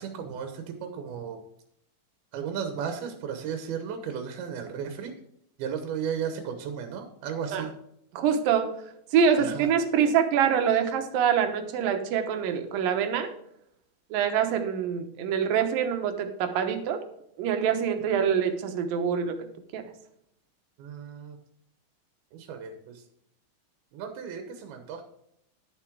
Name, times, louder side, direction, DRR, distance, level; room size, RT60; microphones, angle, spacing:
voice 1, 0.0-1.4 2.3-5.1 5.6-7.7 9.4-9.7 20.8-21.4 22.3-23.0 23.9-25.0, right 7 dB, 90° right, 6 dB, 3.0 m, -35 dB
voice 2, 8.1-8.7 9.1-13.3 14.1-17.0 17.4-19.5 19.7-19.9, right 7 dB, 75° right, 7 dB, 2.7 m, -25 dB
12.0 x 7.4 x 4.6 m, 0.75 s
omnidirectional pair, 4.2 m